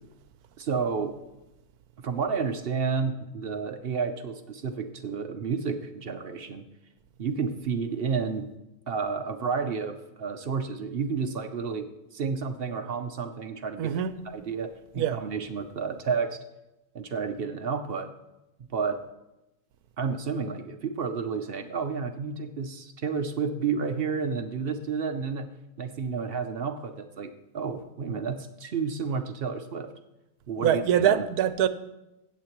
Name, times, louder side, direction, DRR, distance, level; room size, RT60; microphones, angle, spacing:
voice 1, 0.6-1.2 2.0-6.6 7.2-8.5 8.9-14.0 14.3-16.4 16.9-18.1 18.7-19.0 20.0-25.5 25.8-29.9 30.5-31.2, right 5 dB, 55° right, 0.7 m, -31 dB
voice 2, 13.8-14.1 14.9-15.2 30.6-31.7, right 9 dB, 85° right, 1.1 m, -24 dB
16.0 x 8.1 x 3.0 m
omnidirectional pair, 1.6 m